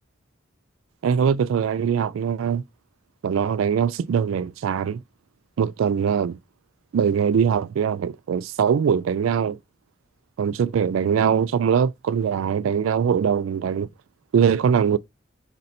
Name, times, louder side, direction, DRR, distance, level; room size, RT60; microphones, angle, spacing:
voice 1, 1.0-2.6 3.2-5.0 5.6-6.4 6.9-9.6 10.4-13.9 14.3-15.0, right 7 dB, 90° right, 0.3 m, -22 dB
4.3 x 2.6 x 4.1 m
head